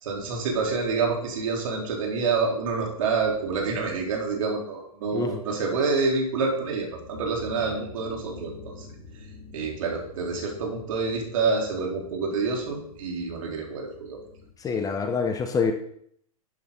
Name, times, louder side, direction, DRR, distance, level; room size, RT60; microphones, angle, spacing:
voice 1, 0.0-8.9 9.5-14.2, right 4 dB, 60° right, -1 dB, 4.2 m, -27 dB
sound 1, 6.3-14.5, left 3 dB, 50° left, 3.2 m, -46 dB
voice 2, 14.6-15.7, left 5 dB, 20° left, 6 dB, 1.2 m, -26 dB
12.5 x 8.8 x 4.2 m, 0.67 s
figure-of-eight pair, 110°, 19 cm